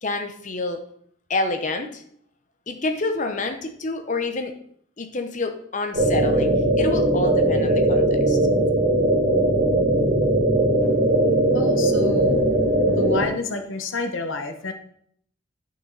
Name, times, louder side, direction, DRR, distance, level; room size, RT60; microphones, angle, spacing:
voice 1, 0.0-0.8 1.3-2.0 2.7-4.5 5.0-8.4, left 2 dB, 40° left, 6 dB, 0.9 m, -28 dB
sound 1, 5.9-13.2, right 1 dB, 45° right, 2.6 m, -19 dB
voice 2, 11.5-12.4 12.8-14.7, left 3 dB, 85° left, 7 dB, 1.0 m, -29 dB
10.5 x 6.2 x 4.0 m, 0.66 s
head